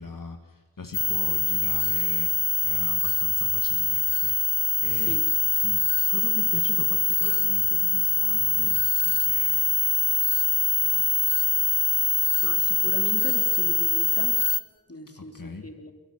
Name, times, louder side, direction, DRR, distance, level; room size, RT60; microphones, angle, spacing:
voice 1, 0.0-4.4 4.8-5.2 5.6-5.8 6.1-10.2 10.8-11.2 11.6-11.7 15.2-15.7, left 3 dB, 65° left, 5 dB, 1.6 m, -41 dB
sound 1, 0.9-14.6, left 2 dB, 85° left, 0.9 m, -23 dB
voice 2, 4.9-5.3 12.4-14.4 14.9-15.9, left 2 dB, 40° left, 5 dB, 3.3 m, -38 dB
23.5 x 13.5 x 9.3 m, 1.3 s
wide cardioid pair, 45°, 35 cm